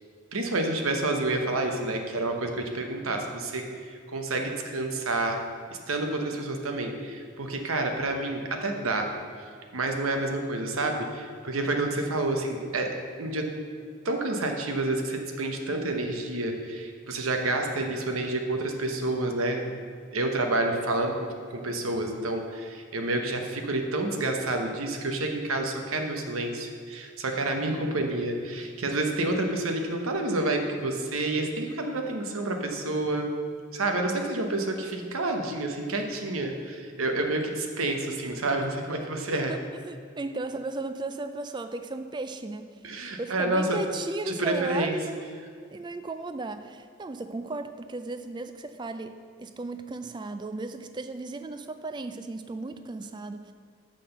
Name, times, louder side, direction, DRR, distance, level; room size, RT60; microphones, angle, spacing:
voice 1, 0.3-5.4 5.7-9.1 9.7-13.5 14.0-19.7 20.1-33.3 33.7-39.5 42.8-43.8 44.3-45.0, right 2 dB, 80° right, 4 dB, 1.0 m, -29 dB
voice 2, 39.5-45.3 45.7-53.5, right 3 dB, 20° right, 9 dB, 0.3 m, -35 dB
6.5 x 5.8 x 6.6 m, 2.2 s
head